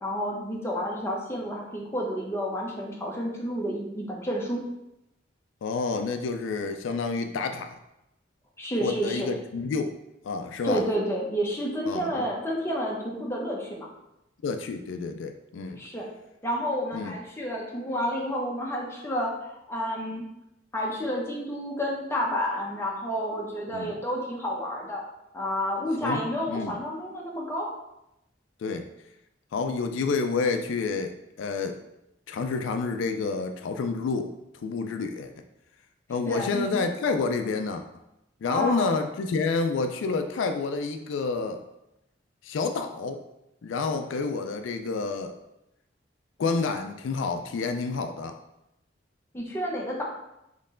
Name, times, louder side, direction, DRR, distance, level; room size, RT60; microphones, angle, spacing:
voice 1, 0.0-4.6 8.6-9.3 10.6-13.9 15.8-16.1 16.4-20.2 20.7-25.0 25.3-27.7 36.3-36.7 38.5-38.9 49.3-50.0, equal, 15° left, -2 dB, 0.8 m, -30 dB
voice 2, 5.6-7.8 8.8-10.0 10.2-10.8 11.9-12.3 14.4-15.8 16.9-17.1 23.7-23.9 26.0-26.7 28.6-28.9 29.5-31.8 32.3-34.3 34.6-35.3 36.1-37.8 38.4-41.6 42.4-43.2 43.6-45.3 46.4-48.4, left 4 dB, 80° left, 6 dB, 0.4 m, -29 dB
4.3 x 3.1 x 3.7 m, 0.87 s
head